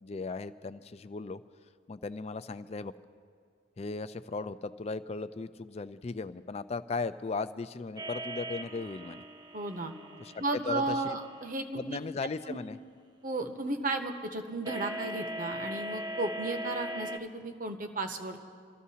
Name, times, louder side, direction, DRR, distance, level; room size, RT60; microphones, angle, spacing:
voice 1, 0.0-1.4 1.9-2.9 3.8-9.2 10.2-11.2 11.7-12.8, left 3 dB, 35° left, 13 dB, 0.4 m, -37 dB
sound 1, 8.0-11.6 14.7-17.2, equal, 20° right, 0.6 m, -40 dB
voice 2, 9.5-9.9 10.4-12.0 12.5-12.6 13.2-18.4, right 2 dB, 45° right, 6 dB, 0.9 m, -34 dB
27.0 x 13.5 x 2.8 m, 2.1 s
head